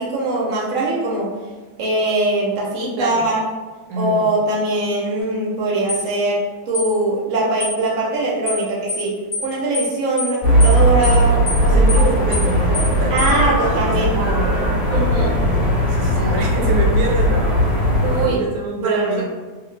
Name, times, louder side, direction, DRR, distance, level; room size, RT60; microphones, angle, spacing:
voice 1, 0.0-1.3 1.8-3.4 4.0-9.1 9.4-12.0 13.1-14.3 14.9-15.3 18.0-18.4 18.8-19.3, right 2 dB, 70° right, -4 dB, 0.7 m, -21 dB
voice 2, 3.0-3.3 3.9-4.3 11.7-15.2 15.9-17.7 18.2-19.3, right 3 dB, 90° right, 0 dB, 1.4 m, -26 dB
sound 1, 5.9-6.1 6.7-6.9 7.6-7.8 8.5-8.6 8.9-9.1 9.3-9.5 9.7-9.9 10.2-10.3 10.6-10.8 11.0-11.2 11.5-11.6 11.9-12.1 12.3-12.5 12.7-12.9 13.2-13.3, left 3 dB, 85° left, 0.5 m, -25 dB
sound 2, 10.4-18.2, equal, 25° left, 0.9 m, -17 dB
3.0 x 2.5 x 3.1 m, 1.3 s
omnidirectional pair, 2.2 m